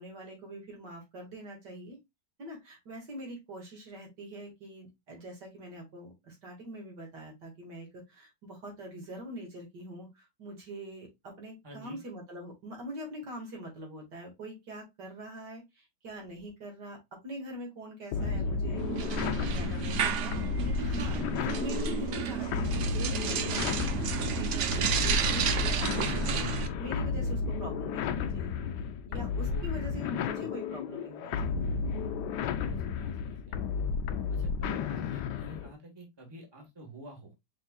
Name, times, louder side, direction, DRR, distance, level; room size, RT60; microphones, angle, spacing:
voice 1, 0.0-2.0 2.4-18.8 19.2-31.7, right 1 dB, 65° right, 0 dB, 2.5 m, -44 dB
voice 2, 11.6-12.0 18.2-18.5 23.9-24.3 29.5-29.6 30.3-30.5 32.6-33.6 34.3-37.3, right 2 dB, 15° right, 1 dB, 1.3 m, -48 dB
sound 1, 18.1-35.7, left 6 dB, 75° left, 1.1 m, -33 dB
sound 2, 18.8-26.7, right 6 dB, 85° right, 0.6 m, -31 dB
5.3 x 3.9 x 2.3 m, 0.20 s
omnidirectional pair, 2.0 m